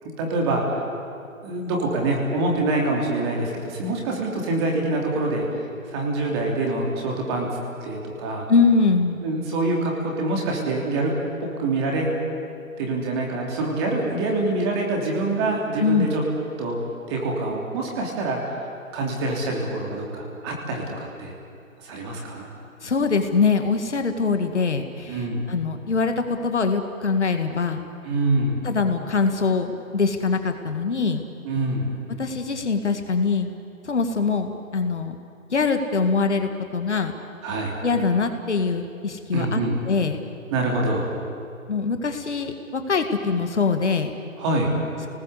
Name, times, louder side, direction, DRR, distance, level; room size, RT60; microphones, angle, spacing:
voice 1, 0.0-0.7 1.4-5.4 5.9-7.5 7.8-8.4 9.2-11.1 11.4-12.1 12.8-16.2 16.6-16.8 17.1-18.5 18.9-21.3 21.8-22.5 25.1-25.5 28.0-28.6 31.4-31.9 37.4-37.8 39.3-39.8 40.5-41.1 44.4-44.7, right 2 dB, 20° right, -1 dB, 3.2 m, -25 dB
voice 2, 8.5-9.2 15.8-16.1 22.8-27.9 28.6-31.2 32.2-33.5 33.8-35.1 35.5-37.1 37.8-39.6 39.9-40.2 41.7-44.1, left 4 dB, 55° left, 6 dB, 2.0 m, -23 dB
28.5 x 19.5 x 8.2 m, 2.5 s
figure-of-eight pair, 145°, 42 cm